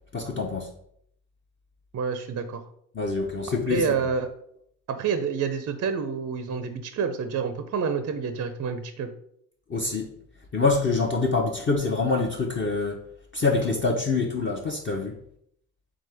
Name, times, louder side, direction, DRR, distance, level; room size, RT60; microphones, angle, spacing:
voice 1, 0.1-0.7 2.9-4.0 9.7-10.1 10.5-13.0 13.3-15.2, left 3 dB, 30° left, 0 dB, 0.7 m, -25 dB
voice 2, 1.9-2.6 3.7-4.3 4.9-9.1, right 6 dB, 40° right, 8 dB, 0.5 m, -28 dB
3.6 x 3.4 x 3.3 m, 0.69 s
supercardioid pair, 60°, 42 cm